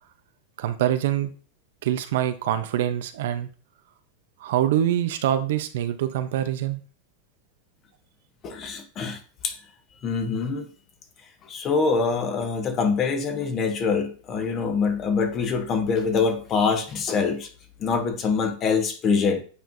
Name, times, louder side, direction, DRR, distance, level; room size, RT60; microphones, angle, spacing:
voice 1, 0.6-1.3 1.8-3.5 4.4-6.8, right 11 dB, 70° right, 10 dB, 0.7 m, -24 dB
voice 2, 8.4-9.6 10.0-10.7 11.4-17.5 17.8-19.4, left 5 dB, 30° left, 5 dB, 1.1 m, -24 dB
8.4 x 4.4 x 2.6 m, 0.38 s
supercardioid pair, 155°, 0 cm